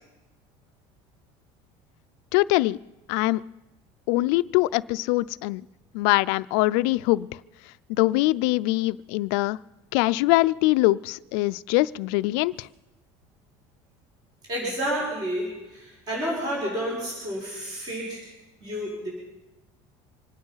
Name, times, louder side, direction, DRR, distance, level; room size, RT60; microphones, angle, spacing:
voice 1, 2.3-2.8 3.1-3.4 4.1-5.6 5.9-7.3 7.9-9.6 9.9-12.7, left 19 dB, 85° left, 16 dB, 0.4 m, -23 dB
voice 2, 14.5-18.3 18.6-19.2, equal, 30° right, -4 dB, 4.9 m, -30 dB
25.0 x 9.6 x 5.6 m, 0.97 s
cardioid pair, 175°, 12 cm